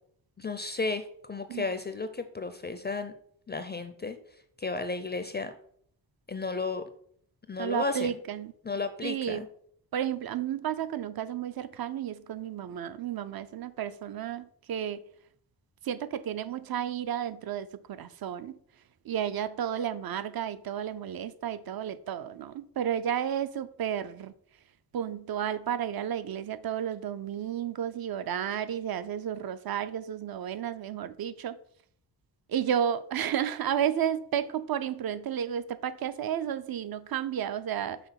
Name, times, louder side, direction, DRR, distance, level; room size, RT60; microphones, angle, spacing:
voice 1, 0.4-3.1 3.5-4.2 4.6-5.5 6.3-6.8 7.5-8.1 8.6-9.5, left 3 dB, 25° left, 0.4 m, -33 dB
voice 2, 7.6-8.5 9.0-9.4 9.9-15.0 15.8-18.6 19.0-24.3 24.9-31.6 32.5-38.0, right 9 dB, 60° right, 0.5 m, -32 dB
5.8 x 3.8 x 5.7 m
wide cardioid pair, 140°, 42 cm